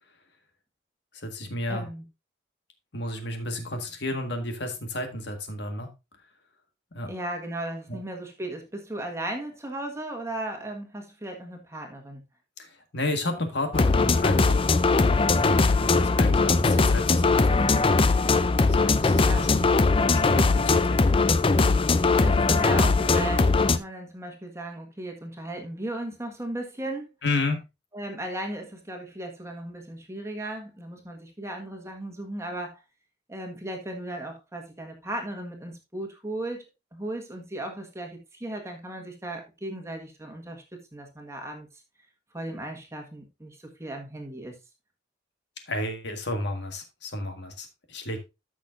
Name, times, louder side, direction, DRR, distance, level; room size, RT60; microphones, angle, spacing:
voice 1, 1.1-1.9 2.9-5.9 6.9-7.1 7.9-8.0 12.6-14.8 15.0-17.9 18.7-19.7 20.1-21.0 27.2-27.6 45.7-48.2, left 2 dB, 60° left, 1.7 m, -32 dB
voice 2, 1.7-2.0 7.0-12.2 19.1-19.6 22.2-27.1 27.9-32.8 33.3-36.6 36.9-41.7 42.3-44.6, right 1 dB, 15° right, 1.6 m, -36 dB
sound 1, 13.7-23.8, left 3 dB, 25° left, 0.4 m, -20 dB
13.5 x 6.3 x 2.6 m
head